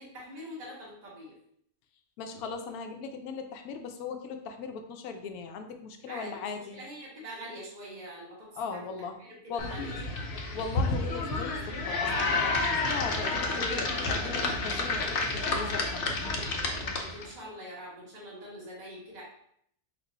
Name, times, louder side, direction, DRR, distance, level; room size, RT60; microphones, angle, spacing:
voice 1, 0.0-1.3 6.1-8.8 9.2-10.3 16.7-19.2, equal, 30° right, -5 dB, 1.3 m, -44 dB
voice 2, 2.2-6.8 8.6-9.2 9.5-9.8 10.5-16.2, left 5 dB, 80° left, 6 dB, 1.1 m, -38 dB
sound 1, 9.6-17.3, left 3 dB, 55° left, 0.6 m, -30 dB
4.6 x 2.4 x 3.9 m, 0.70 s
omnidirectional pair, 1.5 m